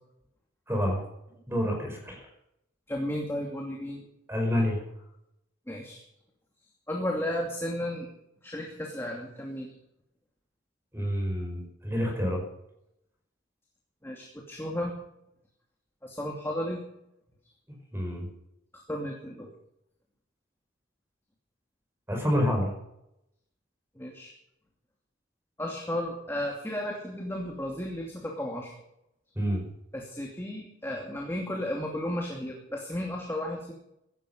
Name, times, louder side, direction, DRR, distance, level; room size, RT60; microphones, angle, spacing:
voice 1, 0.7-1.0 1.5-2.2 4.3-4.8 10.9-12.4 17.9-18.3 22.1-22.7 29.4-29.6, equal, 15° right, 2 dB, 5.3 m, -28 dB
voice 2, 2.9-4.0 5.7-6.0 6.9-8.1 8.4-9.7 14.0-15.0 16.0-16.8 18.7-19.5 24.0-24.3 25.6-28.7 29.9-33.7, left 1 dB, 15° left, -1 dB, 2.6 m, -34 dB
16.5 x 13.0 x 5.5 m, 0.81 s
head